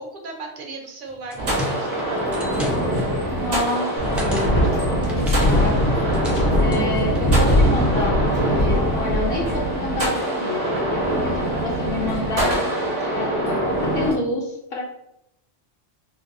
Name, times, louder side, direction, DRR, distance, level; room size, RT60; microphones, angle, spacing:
voice 1, 0.0-2.1, right 3 dB, 50° right, 2 dB, 0.8 m, -36 dB
sound 1, 1.1-7.5, left 1 dB, ahead, 0.5 m, -35 dB
sound 2, 1.4-14.1, right 1 dB, 80° right, 1.5 m, -24 dB
voice 2, 3.3-5.9 6.6-14.8, left 2 dB, 60° left, -2 dB, 0.8 m, -29 dB
Wind, 4.0-9.6, left 1 dB, 85° left, 1.4 m, -21 dB
5.2 x 2.1 x 2.6 m, 0.77 s
omnidirectional pair, 1.2 m